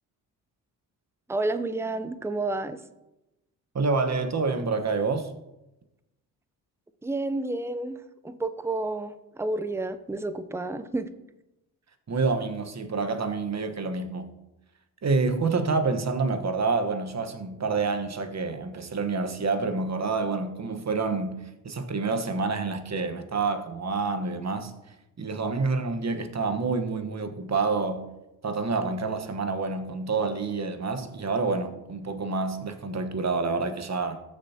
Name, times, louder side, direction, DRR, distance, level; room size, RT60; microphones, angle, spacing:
voice 1, 1.3-2.8 7.0-8.0 8.2-11.1, right 2 dB, 5° right, 0.6 m, -30 dB
voice 2, 3.7-5.3 12.1-14.3 15.0-24.7 25.2-28.1 28.4-34.2, right 4 dB, 35° right, 1.4 m, -28 dB
14.0 x 7.1 x 2.9 m
supercardioid pair, 50°, 45 cm